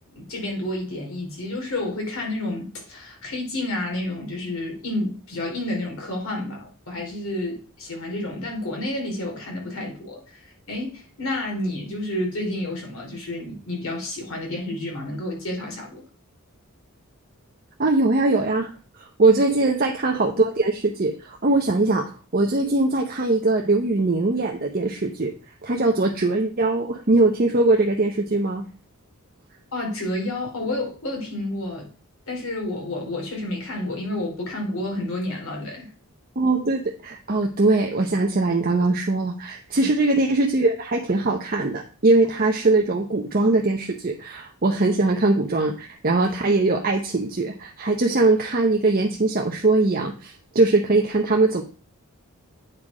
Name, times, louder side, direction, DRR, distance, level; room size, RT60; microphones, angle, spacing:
voice 1, 0.1-16.0 19.2-19.4 29.7-31.9 32.3-35.9 39.7-39.9, left 1 dB, 65° left, 3.2 m, -30 dB
voice 2, 17.8-18.7 19.0-25.3 25.6-28.6 36.4-51.6, right 2 dB, 40° right, 0.8 m, -21 dB
8.9 x 4.3 x 4.9 m
head